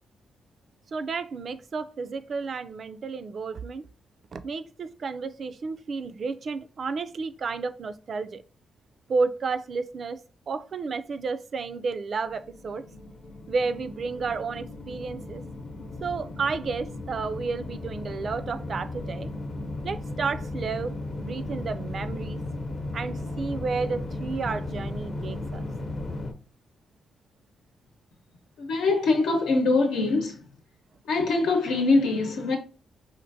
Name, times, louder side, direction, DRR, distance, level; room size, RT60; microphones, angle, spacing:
voice 1, 0.9-3.8 4.3-8.4 9.1-12.8 13.5-15.4 16.0-19.3 19.8-22.4 22.9-25.7, right 4 dB, 50° right, 0.4 m, -31 dB
sound 1, 12.3-26.3, left 2 dB, 40° left, 0.7 m, -35 dB
voice 2, 28.6-30.4 31.1-32.6, left 3 dB, 85° left, 0.9 m, -23 dB
4.4 x 2.5 x 2.6 m
cardioid pair, 95°, 0 cm